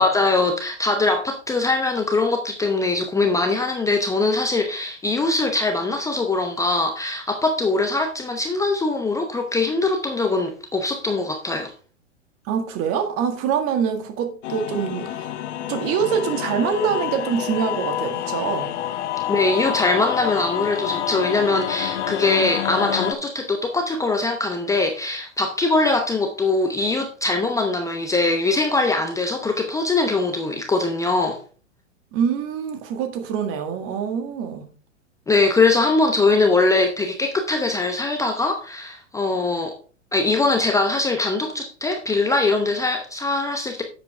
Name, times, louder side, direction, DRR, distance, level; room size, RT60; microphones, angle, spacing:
voice 1, 0.0-11.7 19.3-31.4 35.3-39.8 40.1-43.8, left 3 dB, 10° left, 0.7 m, -22 dB
voice 2, 12.5-15.3 15.7-18.7 32.1-34.7, right 7 dB, 35° right, 1.8 m, -25 dB
sound 1, 14.4-23.1, left 12 dB, 60° left, 0.9 m, -28 dB
10.5 x 7.6 x 3.3 m
hypercardioid pair, 110°, 39 cm